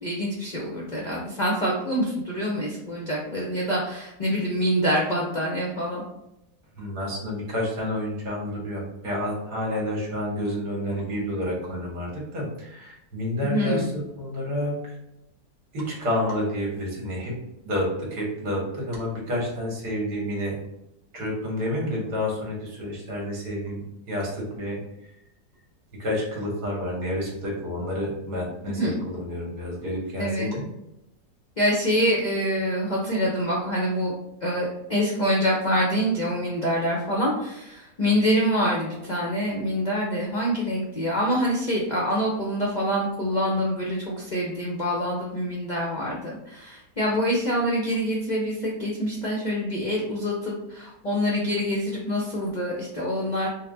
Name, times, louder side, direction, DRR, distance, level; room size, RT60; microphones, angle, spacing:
voice 1, 0.0-6.0 13.4-13.9 28.7-29.0 30.2-30.5 31.6-34.1 34.4-53.5, equal, 60° left, -3 dB, 0.4 m, -26 dB
voice 2, 6.8-13.9 14.2-14.8 15.7-17.3 17.6-20.6 21.1-24.8 26.0-30.6, left 1 dB, 70° right, -3 dB, 1.9 m, -29 dB
4.0 x 2.1 x 3.9 m, 0.86 s
omnidirectional pair, 1.7 m